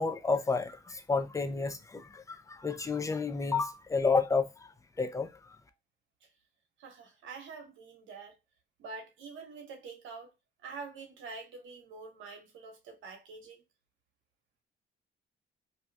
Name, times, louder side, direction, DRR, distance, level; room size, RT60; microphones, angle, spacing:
voice 1, 0.0-4.7 5.0-5.6, left 4 dB, 15° left, 0.4 m, -31 dB
voice 2, 6.8-8.4 8.8-10.3 10.6-13.6, right 4 dB, 80° right, 1.0 m, -46 dB
2.7 x 2.3 x 3.3 m
cardioid pair, 90°, 20 cm